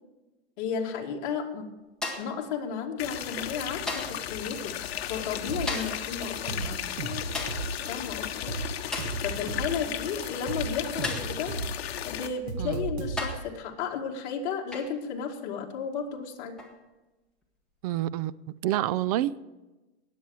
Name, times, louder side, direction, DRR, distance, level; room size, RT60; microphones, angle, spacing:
voice 1, 0.6-1.7 2.2-4.8 5.1-6.9 7.9-8.5 9.2-11.6 12.1-16.6, left 6 dB, 45° left, 1 dB, 2.2 m, -33 dB
sound 1, 2.0-2.4 3.9-4.3 5.7-6.1 7.3-7.7 8.9-9.2 11.0-11.4 12.4-12.5 13.2-13.5 14.7-15.0 16.6-16.8, left 2 dB, ahead, 1.7 m, -35 dB
sound 2, 3.0-12.3, left 10 dB, 70° left, 1.1 m, -35 dB
sound 3, 5.5-5.9 6.2-7.9 8.2-9.9 10.2-11.7 12.0-13.5, right 4 dB, 80° right, 2.0 m, -35 dB
voice 2, 17.8-18.3 18.6-19.4, right 13 dB, 35° right, 18 dB, 0.4 m, -28 dB
19.0 x 8.5 x 4.8 m, 1.1 s
supercardioid pair, 150°, 33 cm